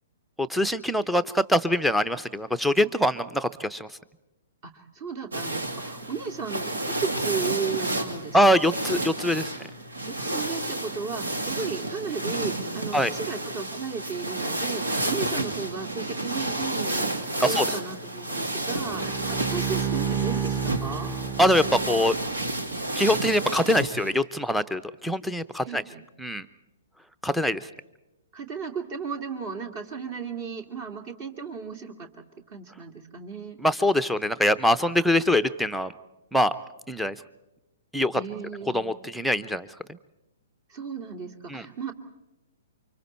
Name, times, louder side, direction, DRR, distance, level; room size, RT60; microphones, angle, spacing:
voice 1, 0.4-3.9 8.3-9.5 12.9-13.1 17.4-17.6 21.4-22.1 22.9-25.8 26.2-26.5 27.2-27.7 33.6-35.9 36.3-36.5 36.9-37.2 37.9-38.2 38.7-40.0 41.5-41.7, left 1 dB, ahead, 9 dB, 0.7 m, -23 dB
voice 2, 4.6-8.4 10.1-21.1 25.6-26.0 28.3-32.2 32.5-33.6 38.1-38.9 40.7-41.9, right 5 dB, 40° right, 5 dB, 2.6 m, -35 dB
sound 1, 5.3-24.1, right 2 dB, 80° right, 2.2 m, -31 dB
Bowed string instrument, 18.8-22.4, right 7 dB, 15° right, 1.2 m, -30 dB
29.0 x 25.0 x 4.4 m, 0.97 s
figure-of-eight pair, 120°, 0 cm